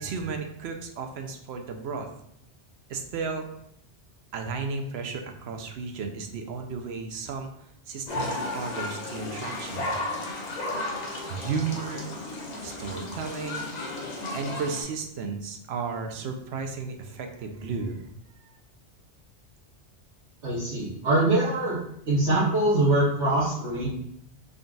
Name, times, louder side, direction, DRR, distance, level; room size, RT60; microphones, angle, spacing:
voice 1, 0.0-2.1 2.9-3.5 4.3-7.5 7.9-10.0 11.3-12.1 12.6-13.7 14.3-18.0 18.4-18.5, right 5 dB, 70° right, 4 dB, 0.8 m, -34 dB
sound 1, 8.1-14.8, left 2 dB, 45° left, 0.7 m, -34 dB
voice 2, 20.4-21.8 22.1-23.9, right 2 dB, 85° right, -10 dB, 1.4 m, -23 dB
3.8 x 2.3 x 3.8 m, 0.75 s
omnidirectional pair, 1.2 m